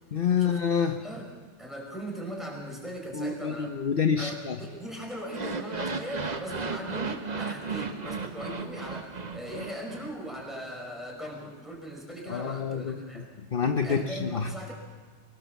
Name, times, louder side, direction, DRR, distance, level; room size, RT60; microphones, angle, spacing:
voice 1, 0.1-1.0 3.1-4.6 12.3-13.2 13.5-14.5, left 6 dB, 50° left, 6 dB, 1.1 m, -27 dB
voice 2, 1.0-1.3 1.6-3.7 4.2-13.3 13.8-14.7, equal, ahead, 0 dB, 5.6 m, -39 dB
sound 1, 5.2-10.4, right 4 dB, 35° right, 1.1 m, -35 dB
23.5 x 19.5 x 7.1 m, 1.4 s
omnidirectional pair, 1.3 m